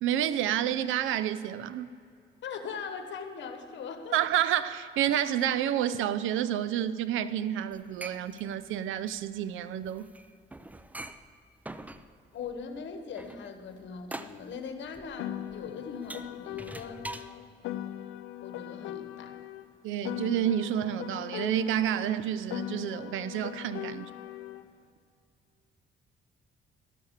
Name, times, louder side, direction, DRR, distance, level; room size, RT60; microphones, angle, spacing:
voice 1, 0.0-1.9 4.1-10.1 19.8-24.1, right 10 dB, 85° right, 0.5 m, -29 dB
voice 2, 2.4-4.2 12.3-17.0 18.4-19.4, left 5 dB, 70° left, 1.2 m, -40 dB
sound 1, 7.7-17.3, right 1 dB, 10° right, 0.5 m, -44 dB
Piano, 15.2-19.7 20.0-24.7, left 13 dB, 85° left, 0.5 m, -40 dB
12.5 x 6.7 x 7.2 m
cardioid pair, 90°, 20 cm